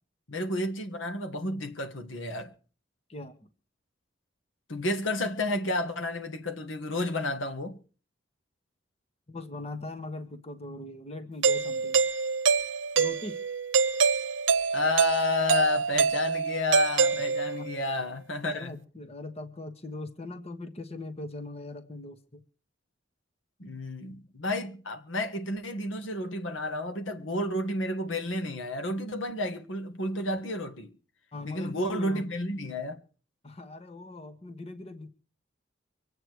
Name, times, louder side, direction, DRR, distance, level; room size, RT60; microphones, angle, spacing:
voice 1, 0.3-2.5 4.7-7.8 14.7-18.7 23.6-30.9 31.5-33.0, left 2 dB, 80° left, 1.6 m, -31 dB
voice 2, 3.1-3.5 5.4-5.5 9.3-12.1 12.9-13.4 17.1-17.2 17.5-17.8 18.4-22.4 31.3-32.5 33.4-35.1, left 2 dB, 30° left, 1.3 m, -40 dB
Doorbell, 11.4-17.8, right 5 dB, 75° right, 0.8 m, -26 dB
24.5 x 8.8 x 4.7 m
head